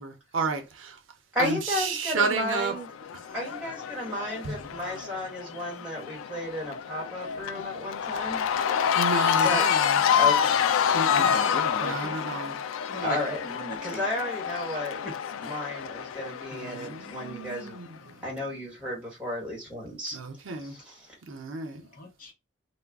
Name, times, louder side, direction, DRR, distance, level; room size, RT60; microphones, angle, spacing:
voice 1, 0.0-0.6 1.4-2.7 4.4-4.5 8.6-8.7 9.0-10.0 10.9-11.3 11.8-12.6 16.5-18.2 20.1-20.8 21.3-21.8, right 4 dB, 80° right, 0.6 m, -32 dB
voice 2, 1.3-2.9 3.3-8.5 9.3-9.6 10.2-10.6 13.0-13.4 13.8-15.0 15.4-17.8 18.2-20.2 20.6-21.1, left 1 dB, 5° right, 1.3 m, -33 dB
Cheering / Crowd, 2.4-17.7, left 8 dB, 90° left, 0.3 m, -28 dB
voice 3, 10.0-10.3 11.2-12.1 12.9-14.0 15.0-15.1 20.6-20.8 21.8-22.3, left 1 dB, 45° left, 0.8 m, -37 dB
2.3 x 2.1 x 3.5 m
head